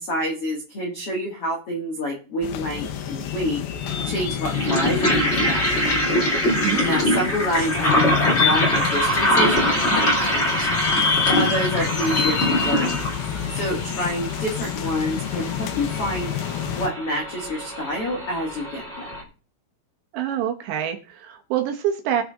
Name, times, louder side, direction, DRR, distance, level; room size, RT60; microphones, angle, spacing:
voice 1, 0.0-3.6 4.0-5.6 6.8-10.7 11.3-13.1 13.5-16.3 16.7-19.1, equal, 60° left, -1 dB, 1.5 m, -28 dB
sound 1, 2.4-16.9, left 9 dB, 75° left, 2.4 m, -28 dB
sound 2, 3.8-19.2, equal, 30° left, 1.2 m, -24 dB
voice 2, 6.5-6.8 20.1-22.2, right 10 dB, 75° right, 5 dB, 2.8 m, -26 dB
19.0 x 6.5 x 3.6 m, 0.37 s
omnidirectional pair, 5.9 m